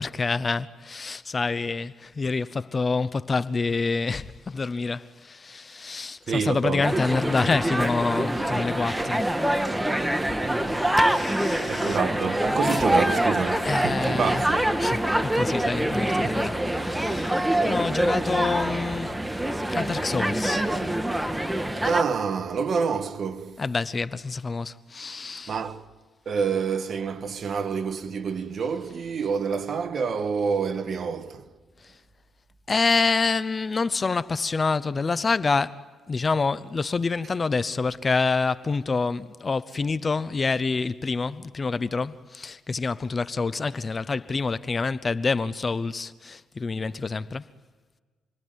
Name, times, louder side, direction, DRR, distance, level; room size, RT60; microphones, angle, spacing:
voice 1, 0.0-9.4 11.0-12.0 13.5-14.5 14.8-17.4 17.7-19.1 19.7-20.8 23.6-25.6 31.8-31.9 32.7-47.4, left 4 dB, 30° left, 0.8 m, -27 dB
voice 2, 6.3-6.9 11.7-14.7 21.8-23.6 25.5-25.8 26.2-31.5, right 6 dB, 50° right, 1.7 m, -27 dB
sound 1, 6.8-22.0, right 1 dB, 10° right, 1.7 m, -25 dB
29.0 x 21.5 x 9.5 m
cardioid pair, 90°, 0 cm